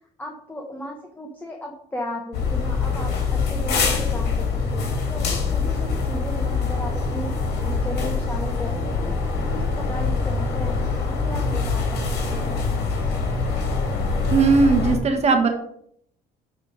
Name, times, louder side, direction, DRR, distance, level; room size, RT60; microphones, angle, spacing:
voice 1, 0.2-7.3 7.6-9.2 9.5-12.6, left 1 dB, 10° left, 1 dB, 1.0 m, -35 dB
sound 1, 2.3-15.0, left 4 dB, 75° left, 1.9 m, -24 dB
voice 2, 14.3-15.5, right 4 dB, 40° right, 4 dB, 1.4 m, -18 dB
7.9 x 3.4 x 4.9 m, 0.68 s
cardioid pair, 110°, 17 cm